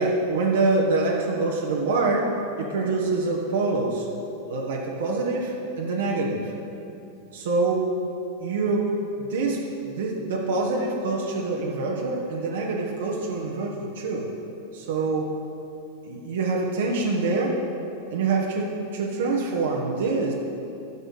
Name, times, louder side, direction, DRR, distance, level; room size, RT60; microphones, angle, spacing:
voice 1, 0.0-4.1 4.5-6.5 7.3-7.9 8.4-14.3 14.7-15.3 16.0-17.6 18.1-20.3, right 3 dB, 60° right, -1 dB, 1.2 m, -25 dB
11.0 x 6.8 x 6.6 m, 2.7 s
figure-of-eight pair, 90°, 0 cm